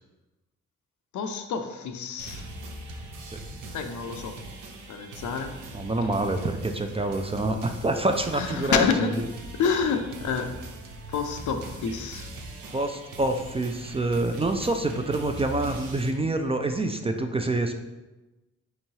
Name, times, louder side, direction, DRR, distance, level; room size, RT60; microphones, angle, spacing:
voice 1, 1.1-2.4 3.7-4.4 4.9-5.5 8.4-9.1 9.6-10.5 11.1-12.3, left 6 dB, 70° left, 6 dB, 0.5 m, -28 dB
sound 1, 2.2-16.1, right 2 dB, 75° right, 0.6 m, -41 dB
voice 2, 5.7-9.3 12.7-17.7, right 2 dB, 20° right, 5 dB, 0.3 m, -27 dB
4.5 x 3.0 x 2.8 m, 1.1 s
supercardioid pair, 50°, 31 cm